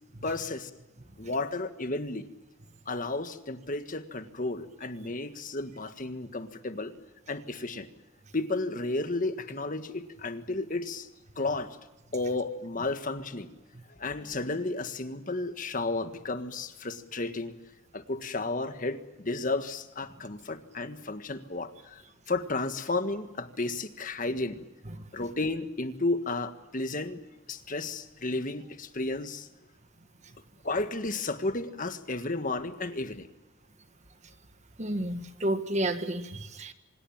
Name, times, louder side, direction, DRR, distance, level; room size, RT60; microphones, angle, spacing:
voice 1, 0.2-0.7 1.2-2.2 2.9-6.9 7.3-7.9 8.3-11.1 11.4-11.7 12.1-13.5 13.9-17.6 17.9-24.6 25.1-27.2 27.5-29.5 30.6-33.3, left 2 dB, 40° left, 9 dB, 1.6 m, -33 dB
voice 2, 34.8-36.7, right 1 dB, 35° right, 9 dB, 1.6 m, -31 dB
25.5 x 21.5 x 7.3 m, 1.0 s
head